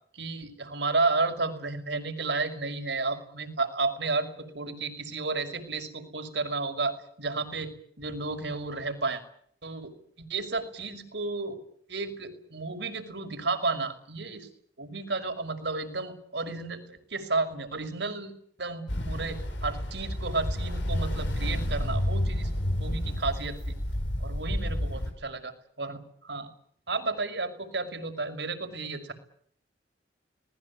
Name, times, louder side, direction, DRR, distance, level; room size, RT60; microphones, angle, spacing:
voice 1, 0.1-9.2 9.6-11.6 11.9-14.5 14.8-18.3 18.6-22.5 22.8-23.8 24.2-26.5 26.9-29.1, right 3 dB, 70° right, 6 dB, 5.6 m, -32 dB
Ocean, 18.9-25.1, equal, 90° left, 7.9 m, -30 dB
26.5 x 20.0 x 8.5 m, 0.64 s
head